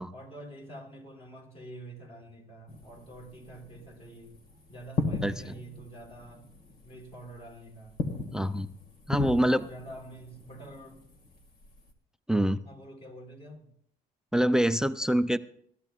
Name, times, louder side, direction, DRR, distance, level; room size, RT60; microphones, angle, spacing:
voice 1, 0.1-4.4 4.7-6.5 6.8-8.0 9.2-11.0 12.6-13.7, right 1 dB, 35° left, 1 dB, 4.0 m, -46 dB
sound 1, 2.7-11.9, left 3 dB, 60° left, 2.0 m, -38 dB
voice 2, 5.2-5.5 8.3-8.7 9.1-9.6 12.3-12.6 14.3-15.4, equal, 5° right, 14 dB, 0.4 m, -25 dB
21.5 x 13.5 x 2.4 m, 0.65 s
cardioid pair, 110°, 17 cm